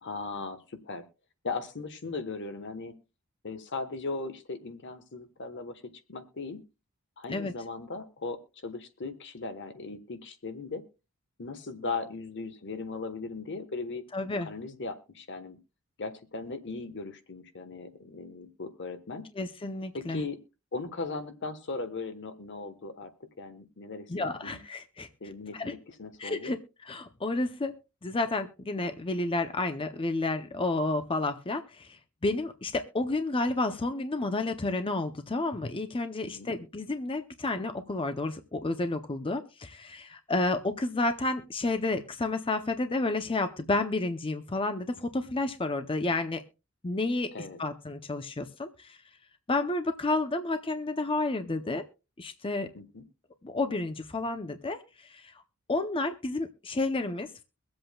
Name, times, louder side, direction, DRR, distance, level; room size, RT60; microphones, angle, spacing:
voice 1, 0.0-1.1 1.4-2.9 3.4-6.6 7.2-10.8 11.4-14.0 14.5-15.6 16.0-19.2 19.9-20.4 20.7-23.1 23.4-24.1 24.4-24.6 25.2-26.5 36.2-36.5 47.3-47.6 52.7-53.0, left 3 dB, 55° left, 9 dB, 1.2 m, -38 dB
voice 2, 14.1-14.5 19.4-20.2 24.1-25.1 25.5-25.7 26.2-27.7 28.0-46.4 46.8-49.0 49.5-51.8 52.2-52.7 53.4-55.4 55.7-57.4, left 2 dB, 25° left, 9 dB, 0.6 m, -31 dB
23.0 x 7.8 x 2.3 m, 0.29 s
head